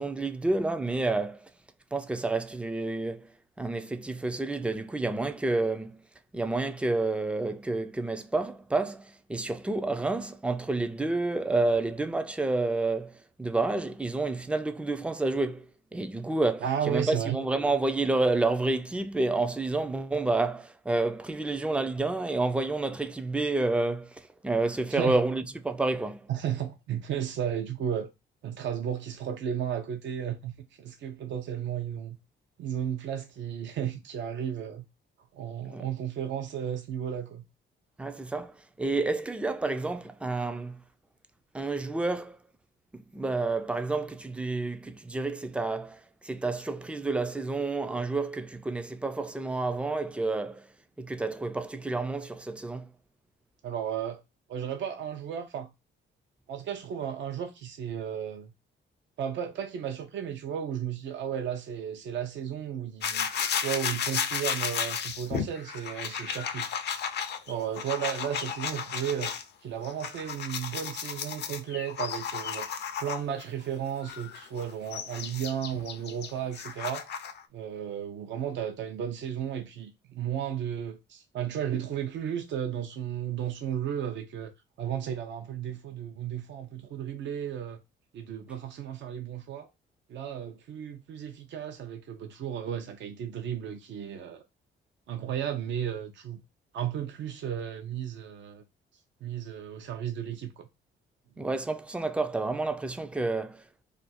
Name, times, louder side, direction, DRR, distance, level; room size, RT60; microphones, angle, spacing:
voice 1, 0.0-1.5 1.9-3.3 3.6-6.0 6.3-15.7 15.9-26.3 35.7-35.9 38.0-40.8 41.5-42.4 42.9-50.7 51.0-52.9 101.4-103.6, right 2 dB, 5° right, 0.3 m, -29 dB
voice 2, 16.6-17.4 24.9-25.2 26.3-28.1 28.4-30.5 30.8-32.2 32.6-34.8 35.3-37.4 53.6-54.2 54.5-55.7 56.5-58.5 59.2-63.3 63.6-66.7 67.5-69.3 69.6-72.7 73.0-77.1 77.5-84.5 84.8-87.8 88.1-89.7 90.1-94.4 95.1-96.4 96.7-98.6 99.2-100.7, right 9 dB, 65° right, 0.6 m, -34 dB
sound 1, 63.0-69.4 69.8-73.4 74.0-77.4, left 7 dB, 60° left, 0.5 m, -33 dB
2.5 x 2.3 x 4.0 m
cardioid pair, 90°, 20 cm